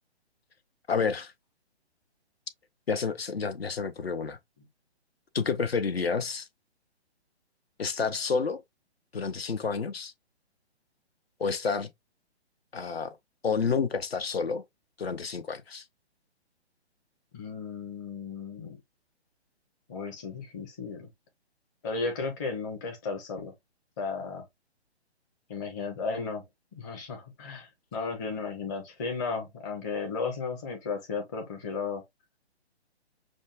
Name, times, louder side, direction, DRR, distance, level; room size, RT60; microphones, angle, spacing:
voice 1, 0.9-1.3 2.9-4.4 5.3-6.5 7.8-8.6 9.1-10.1 11.4-11.9 12.7-13.2 13.4-14.6 15.0-15.8, left 5 dB, 60° left, 0.7 m, -29 dB
voice 2, 17.3-18.8 19.9-21.1 21.8-23.5 24.0-24.4 25.5-26.4 26.8-32.0, left 4 dB, 15° left, 0.7 m, -34 dB
6.2 x 2.3 x 2.4 m
figure-of-eight pair, 135°, 34 cm